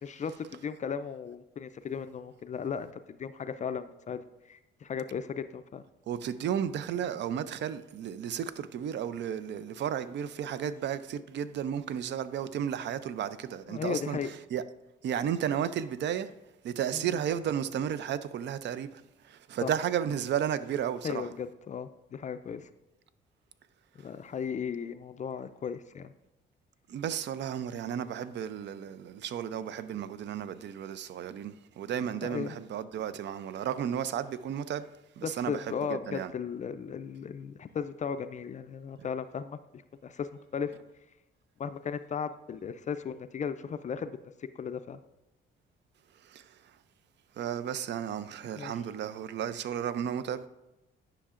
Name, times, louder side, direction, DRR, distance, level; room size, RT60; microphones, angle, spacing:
voice 1, 0.0-4.2 4.5-5.8 13.7-14.3 16.9-17.1 19.6-19.7 21.0-22.7 24.0-26.1 32.2-32.5 35.2-39.6 40.0-40.7 41.6-44.2 44.6-45.0 48.6-48.7, left 7 dB, 40° left, 0.4 m, -36 dB
voice 2, 6.1-14.6 15.0-16.3 16.6-21.3 24.0-24.1 26.9-34.9 35.2-36.3 46.2-46.7 47.4-50.5, right 9 dB, 65° right, 0.5 m, -33 dB
9.9 x 5.7 x 2.5 m
cardioid pair, 90°, 20 cm